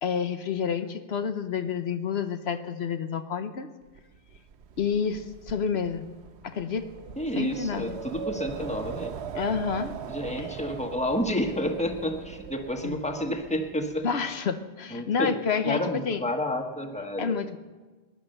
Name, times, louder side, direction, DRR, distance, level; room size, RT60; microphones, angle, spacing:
voice 1, 0.0-3.7 4.8-6.0 6.4-6.9 7.4-8.0 9.3-10.0 10.3-10.6 12.8-13.0 14.0-16.2 17.2-17.6, left 6 dB, 75° left, 9 dB, 1.1 m, -29 dB
Wind, 4.0-14.0, right 7 dB, 90° right, 1.1 m, -40 dB
voice 2, 7.2-9.1 10.1-14.1 14.9-15.3 15.6-17.4, left 1 dB, 5° left, 4 dB, 1.4 m, -30 dB
20.0 x 10.5 x 6.6 m, 1.3 s
omnidirectional pair, 1.1 m